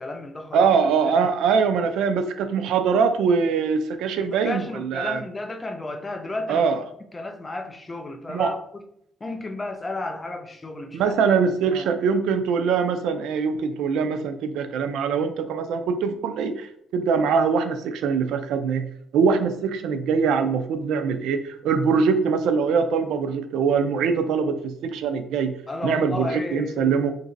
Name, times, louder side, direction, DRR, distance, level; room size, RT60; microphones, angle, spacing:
voice 1, 0.0-0.7 1.0-1.3 4.2-6.7 7.1-8.6 9.2-11.2 11.6-11.9 25.7-27.0, left 2 dB, 15° left, 5 dB, 0.3 m, -33 dB
voice 2, 0.5-5.2 6.5-6.8 8.3-8.5 10.9-16.7 16.9-18.9 19.1-25.5 25.8-27.1, right 5 dB, 80° right, 9 dB, 0.3 m, -23 dB
2.9 x 2.6 x 3.8 m, 0.72 s
cardioid pair, 175°, 0 cm